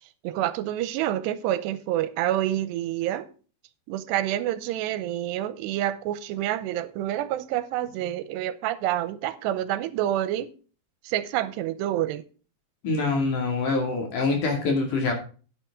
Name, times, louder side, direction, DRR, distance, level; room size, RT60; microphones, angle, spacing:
voice 1, 0.2-3.3 3.9-10.5 11.0-12.2, right 13 dB, 85° right, 2.9 m, -28 dB
voice 2, 12.8-15.1, left 3 dB, 55° left, 3.6 m, -25 dB
10.0 x 9.4 x 3.7 m
omnidirectional pair, 4.8 m